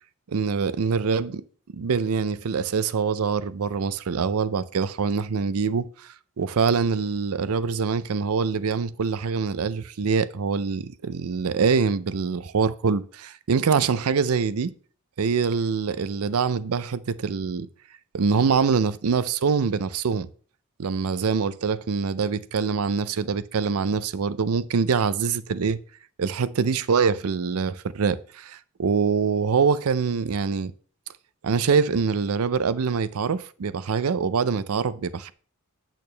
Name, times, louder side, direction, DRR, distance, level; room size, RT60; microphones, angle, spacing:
voice 1, 0.3-1.4 1.7-6.1 6.4-14.7 15.2-17.7 18.1-20.3 20.8-25.8 26.2-30.7 31.4-35.3, right 5 dB, 85° right, 0.5 m, -24 dB
8.5 x 6.4 x 3.3 m
head